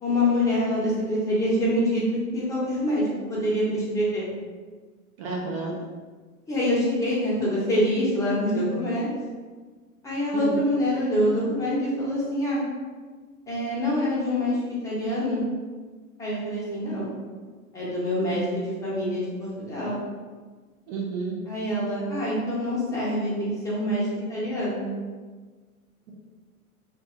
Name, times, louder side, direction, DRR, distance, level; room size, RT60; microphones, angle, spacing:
voice 1, 0.0-4.3 6.5-9.1 10.0-12.6 13.5-15.4 16.2-17.1 17.7-20.0 21.5-24.9, left 1 dB, 5° left, -8 dB, 0.8 m, -25 dB
voice 2, 5.2-5.8 10.3-10.6 18.2-18.4 20.9-21.4, right 3 dB, 40° right, -3 dB, 0.6 m, -31 dB
2.7 x 2.3 x 2.3 m, 1.4 s
figure-of-eight pair, 95°, 44 cm